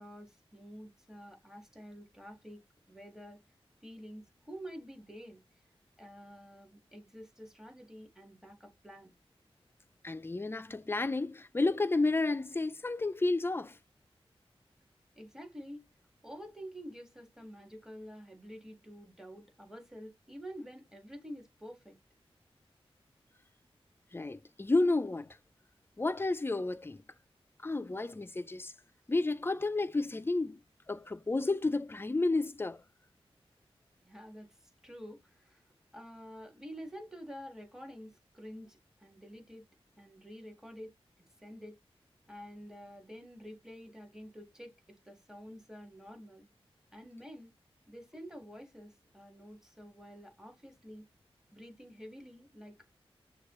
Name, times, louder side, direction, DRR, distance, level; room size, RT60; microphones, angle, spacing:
voice 1, 0.0-2.6 2.9-3.4 3.8-5.4 6.0-9.2 15.2-15.9 16.2-22.0 34.0-34.6 34.8-35.6 35.9-39.6 40.0-41.0 41.4-41.8 42.3-46.4 46.9-47.5 47.9-51.1 51.5-53.0, equal, 5° right, 1.7 m, -49 dB
voice 2, 10.0-13.8 24.1-25.4 26.0-27.0 27.6-28.7 29.1-30.6 30.9-32.8, left 2 dB, 20° left, 0.4 m, -31 dB
6.3 x 2.3 x 3.1 m
wide cardioid pair, 85°, 10 cm